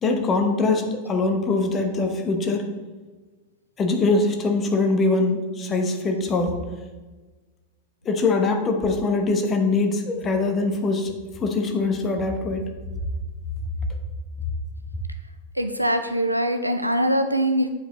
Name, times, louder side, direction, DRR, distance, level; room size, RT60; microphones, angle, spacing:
voice 1, 0.0-2.7 3.8-6.6 8.0-11.1 11.4-12.7, left 3 dB, 25° left, 4 dB, 0.9 m, -22 dB
voice 2, 15.6-17.7, right 1 dB, 90° right, 7 dB, 0.4 m, -22 dB
8.3 x 5.0 x 3.0 m, 1.3 s
figure-of-eight pair, 90°, 0 cm